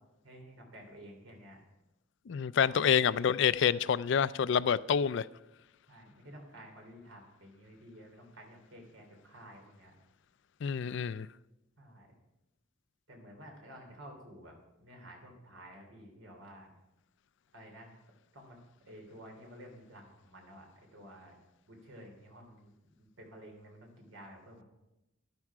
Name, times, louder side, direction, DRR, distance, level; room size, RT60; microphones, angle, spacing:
voice 1, 0.2-1.6 2.6-3.0 5.9-9.9 11.8-12.1 13.1-16.7 17.5-17.9 18.3-18.6 18.8-21.3 21.7-22.7 23.0-24.6, equal, 90° right, 3.4 m, -52 dB
voice 2, 2.3-5.2 10.6-11.3, left 7 dB, 65° left, 0.4 m, -27 dB
12.0 x 11.5 x 4.9 m
head